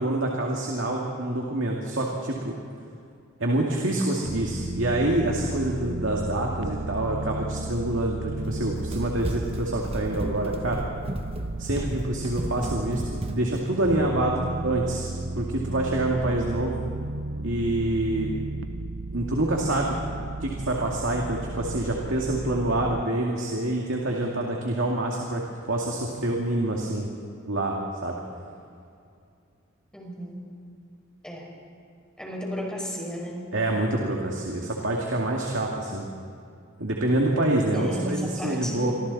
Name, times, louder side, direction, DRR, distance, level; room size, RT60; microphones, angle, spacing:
voice 1, 0.0-2.5 3.4-10.8 11.6-16.8 17.4-18.4 19.1-19.9 20.4-25.4 25.7-27.1 27.5-28.2 33.5-36.1 36.8-38.9, right 1 dB, 70° right, -1 dB, 2.4 m, -26 dB
sound 1, 4.3-13.4 13.8-23.0, right 2 dB, 85° right, 0.9 m, -34 dB
Run, 8.4-13.7, right 1 dB, 30° right, 1.3 m, -34 dB
voice 2, 29.9-30.4 31.2-31.4 32.2-33.4 37.7-38.9, equal, 5° left, -1 dB, 5.0 m, -33 dB
27.5 x 25.0 x 4.2 m, 2.4 s
head